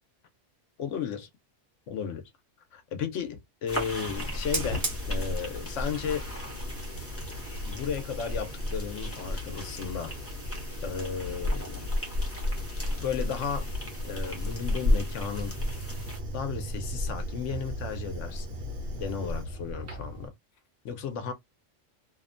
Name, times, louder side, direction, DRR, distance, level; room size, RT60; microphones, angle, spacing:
voice 1, 0.8-1.3 1.9-2.2 2.7-4.8 5.1-6.3 7.6-10.2 10.8-11.9 13.0-13.7 14.0-15.5 16.3-18.6 18.9-20.3 20.8-21.3, left 7 dB, 80° left, 1.0 m, -34 dB
sound 1, 3.7-16.2, equal, 15° left, 0.5 m, -41 dB
Fire, 4.2-20.3, left 1 dB, 50° right, 1.1 m, -33 dB
sound 2, 13.7-20.3, right 7 dB, 80° right, 1.0 m, -42 dB
2.7 x 2.1 x 2.4 m
omnidirectional pair, 1.3 m